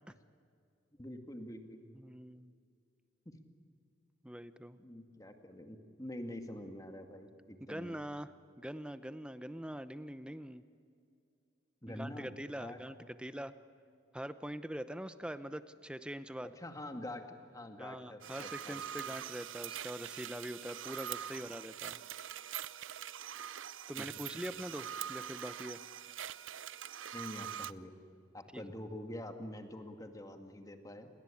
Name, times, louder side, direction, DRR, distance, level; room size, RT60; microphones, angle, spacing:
voice 1, 1.0-1.8 3.3-3.4 4.8-8.0 11.8-13.1 16.6-19.2 24.0-24.1 27.1-27.9 28.3-31.1, left 1 dB, 20° left, 6 dB, 2.2 m, -46 dB
voice 2, 1.9-2.5 4.2-4.8 7.7-10.6 11.9-13.6 14.1-16.5 17.8-22.0 23.9-25.8 28.5-28.6, equal, 5° right, 12 dB, 0.8 m, -43 dB
sound 1, 18.2-27.7, right 10 dB, 90° right, 0.7 m, -44 dB
30.0 x 22.0 x 8.6 m, 2.5 s
head